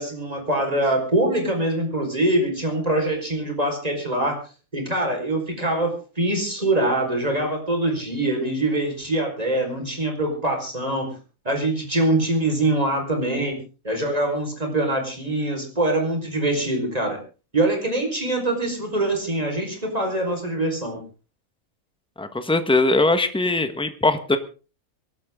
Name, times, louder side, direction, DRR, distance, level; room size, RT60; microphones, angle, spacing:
voice 1, 0.0-4.4 4.7-11.1 11.4-13.6 13.8-17.2 17.5-21.0, right 1 dB, 25° right, 3 dB, 5.0 m, -24 dB
voice 2, 22.2-24.4, left 2 dB, 5° left, 9 dB, 1.3 m, -21 dB
23.5 x 12.5 x 3.8 m, 0.35 s
omnidirectional pair, 1.5 m